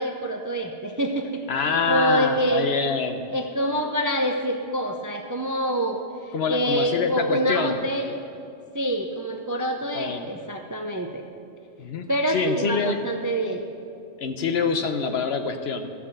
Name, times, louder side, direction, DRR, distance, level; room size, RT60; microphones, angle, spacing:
voice 1, 0.0-2.7 3.3-8.2 8.7-11.2 12.1-13.6, right 1 dB, 25° right, 4 dB, 0.4 m, -26 dB
voice 2, 1.5-3.2 6.3-7.8 9.9-10.3 11.8-13.0 14.2-15.9, left 5 dB, 60° left, 7 dB, 0.9 m, -26 dB
13.5 x 6.1 x 7.5 m, 2.5 s
omnidirectional pair, 1.2 m